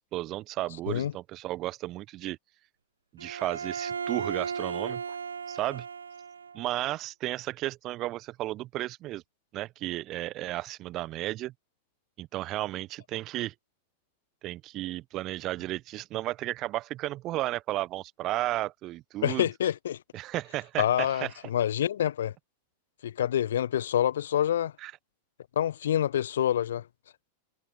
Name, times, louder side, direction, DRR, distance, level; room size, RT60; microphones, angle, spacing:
voice 1, 0.1-2.4 3.1-5.0 5.5-5.9 6.5-9.2 9.5-11.5 12.2-13.5 14.4-19.4 20.1-21.3 24.8-24.9, right 16 dB, 35° right, 1.0 m, -33 dB
Bowed string instrument, 3.2-6.6, right 6 dB, 70° right, 1.0 m, -35 dB
voice 2, 19.2-20.0 20.8-22.3 23.0-24.7 25.5-26.8, left 10 dB, 60° left, 1.3 m, -27 dB
figure-of-eight pair, 90°, 0 cm